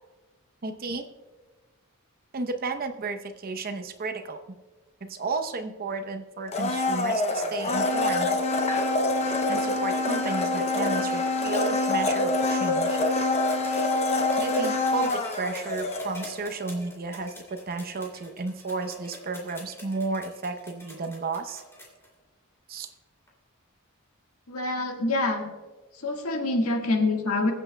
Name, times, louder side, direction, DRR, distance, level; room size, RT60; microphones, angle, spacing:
voice 1, 0.6-1.0 2.3-4.4 5.0-8.4 9.5-13.0 14.4-21.6 22.7-22.9, right 3 dB, 45° right, 8 dB, 0.7 m, -33 dB
Domestic sounds home sounds, 6.5-16.4 16.7-16.8, left 2 dB, 30° left, 0.7 m, -26 dB
sound 1, 13.4-22.1 23.3-23.4, left 1 dB, 10° left, 2.7 m, -46 dB
voice 2, 24.5-25.5 25.9-27.5, left 2 dB, 85° left, 2 dB, 1.5 m, -26 dB
22.5 x 8.1 x 2.2 m, 1.3 s
head